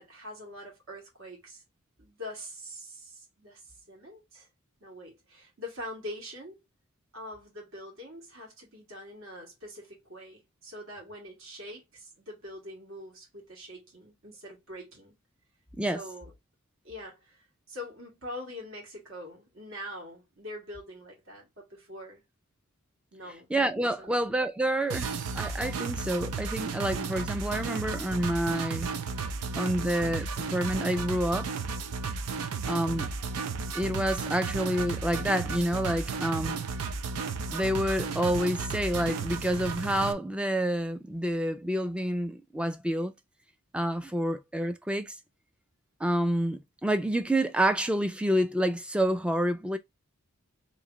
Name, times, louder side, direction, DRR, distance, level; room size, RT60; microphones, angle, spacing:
voice 1, 0.0-1.6 2.0-4.5 4.8-6.6 7.1-15.1 15.9-16.3 16.8-22.2 23.1-23.5 24.0-24.2, left 1 dB, 65° right, 1.8 m, -44 dB
voice 2, 23.5-28.9 29.5-31.5 32.7-33.1 33.7-36.6 37.5-43.1 43.7-45.2 46.0-49.8, right 1 dB, 5° right, 0.3 m, -28 dB
sound 1, 24.9-40.1, right 4 dB, 85° right, 0.6 m, -34 dB
3.1 x 2.8 x 3.6 m
head